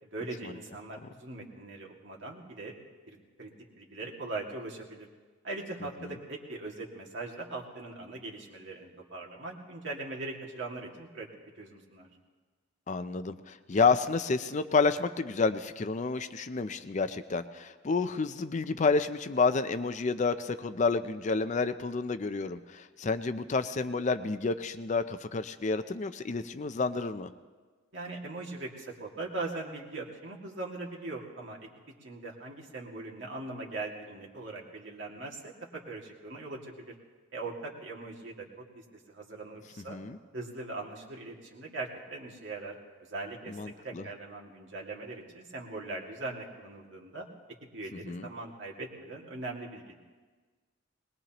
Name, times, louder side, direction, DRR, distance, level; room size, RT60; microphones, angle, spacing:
voice 1, 0.0-2.7 3.1-3.5 3.8-5.1 5.4-11.3 11.6-12.1 27.9-31.7 32.0-36.9 37.3-40.0 40.3-42.7 43.1-43.6 43.8-47.3 47.7-49.9, right 2 dB, 60° right, -1 dB, 2.2 m, -40 dB
voice 2, 12.9-27.3 39.9-40.2 43.5-44.0 48.0-48.3, left 4 dB, 35° left, 11 dB, 0.5 m, -29 dB
21.0 x 20.5 x 3.0 m, 1.4 s
head